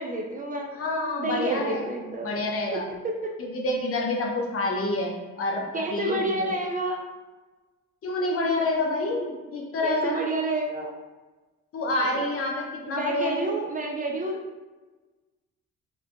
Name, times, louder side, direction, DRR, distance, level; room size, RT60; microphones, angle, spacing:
voice 1, 0.0-0.7 1.2-2.4 5.7-7.0 9.8-10.9 12.1-12.3 12.9-14.4, right 2 dB, 30° right, 1 dB, 0.4 m, -29 dB
voice 2, 0.7-1.9 2.2-2.9 3.4-6.2 8.0-10.3 11.7-13.6, left 2 dB, 50° left, 0 dB, 0.7 m, -28 dB
3.1 x 3.1 x 2.5 m, 1.2 s
cardioid pair, 90°, 30 cm